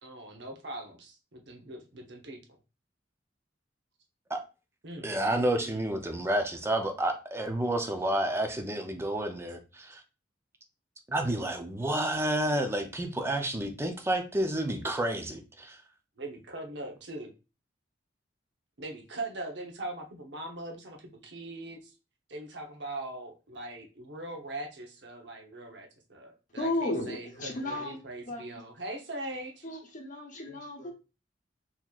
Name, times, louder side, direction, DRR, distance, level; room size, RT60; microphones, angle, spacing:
voice 1, 0.0-2.4 4.8-5.8 16.2-17.3 18.8-21.9 22.3-29.6, right 2 dB, 65° right, 0.9 m, -41 dB
voice 2, 5.0-10.0 11.1-15.8, right 1 dB, 15° right, 0.5 m, -30 dB
voice 3, 26.6-28.0 28.3-28.4 29.6-30.9, left 1 dB, 45° left, 0.8 m, -34 dB
4.0 x 2.9 x 2.4 m
head